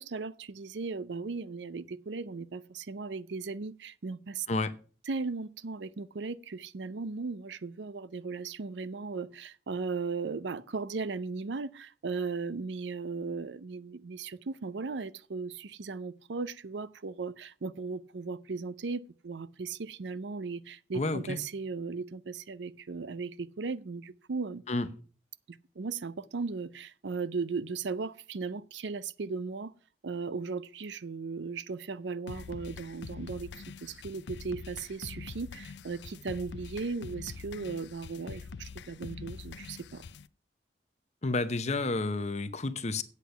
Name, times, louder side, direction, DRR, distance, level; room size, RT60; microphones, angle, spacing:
voice 1, 0.0-4.5 5.1-24.6 25.5-29.7 30.0-33.5 33.8-40.0, right 4 dB, 80° right, 0.5 m, -37 dB
voice 2, 20.9-21.4 24.7-24.9 41.2-43.0, left 2 dB, 40° left, 0.7 m, -30 dB
sound 1, 32.3-40.3, left 5 dB, 75° left, 0.4 m, -44 dB
8.3 x 8.3 x 5.7 m
head